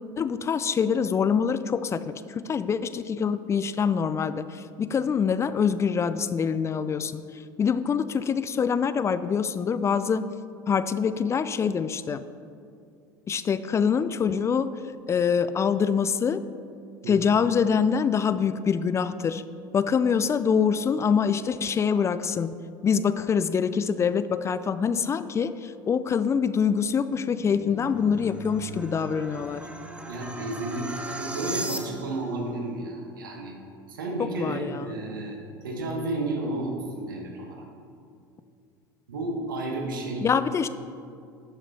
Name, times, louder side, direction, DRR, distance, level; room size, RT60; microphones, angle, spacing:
voice 1, 0.2-10.3 10.7-12.2 13.3-14.7 15.1-16.4 17.1-19.4 19.7-22.5 22.8-29.6 34.2-35.0 40.2-40.7, left 6 dB, 25° left, 13 dB, 0.4 m, -25 dB
sound 1, 27.1-32.3, right 2 dB, 10° right, 0.9 m, -37 dB
voice 2, 30.1-33.5 33.9-35.4 35.6-37.7 39.1-40.3, right 2 dB, 80° right, 1 dB, 1.5 m, -32 dB
11.5 x 5.9 x 4.1 m, 2.4 s
hypercardioid pair, 75°, 11 cm